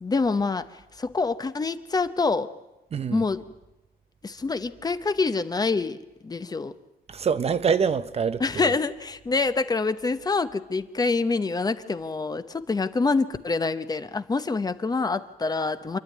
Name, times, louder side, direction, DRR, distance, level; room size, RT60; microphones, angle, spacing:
voice 1, 0.0-0.7 1.0-2.5 3.1-3.4 4.2-6.7 8.4-16.0, left 4 dB, 25° left, 0.8 m, -26 dB
voice 2, 2.9-3.3 7.1-8.8, right 6 dB, 40° right, 0.7 m, -25 dB
27.5 x 11.5 x 9.4 m
cardioid pair, 130°, 16 cm